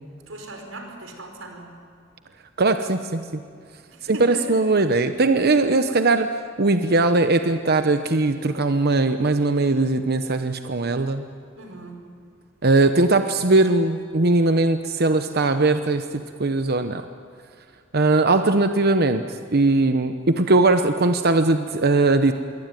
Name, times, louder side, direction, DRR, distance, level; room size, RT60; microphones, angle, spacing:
voice 1, 0.3-1.7 3.9-4.6 11.5-12.0, right 1 dB, 90° right, 4 dB, 5.0 m, -38 dB
voice 2, 2.6-3.2 4.0-6.3 6.6-11.3 12.6-16.0 16.4-17.0 17.9-19.2 19.5-22.3, right 2 dB, 55° right, 8 dB, 1.0 m, -19 dB
26.0 x 22.5 x 9.3 m, 2.3 s
head